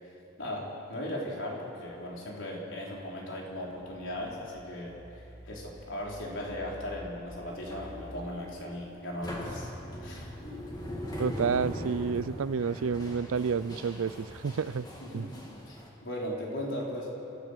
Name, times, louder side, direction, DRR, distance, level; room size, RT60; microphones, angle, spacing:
voice 1, 0.4-5.0 5.4-9.7 10.0-10.4 15.0-17.1, left 1 dB, 65° left, -3 dB, 4.4 m, -37 dB
sound 1, 3.2-8.2, right 1 dB, 5° right, 2.6 m, -50 dB
sound 2, 7.5-15.9, left 1 dB, 20° left, 2.4 m, -41 dB
voice 2, 11.2-14.9 15.1-15.3, right 5 dB, 85° right, 19 dB, 0.4 m, -30 dB
28.5 x 14.0 x 6.7 m, 2.9 s
head